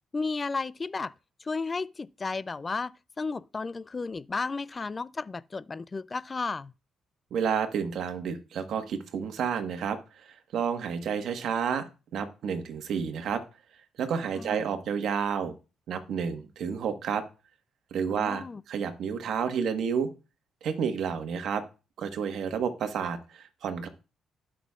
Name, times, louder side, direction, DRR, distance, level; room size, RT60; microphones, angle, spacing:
voice 1, 0.1-1.1 1.4-6.7 14.3-14.7 18.1-18.6, left 4 dB, 30° left, 0.4 m, -33 dB
voice 2, 7.3-11.8 12.1-13.4 14.0-15.5 15.9-17.2 17.9-20.1 20.6-21.6 22.0-23.9, right 7 dB, 70° right, 1.4 m, -30 dB
18.0 x 6.0 x 2.4 m
cardioid pair, 90°, 0 cm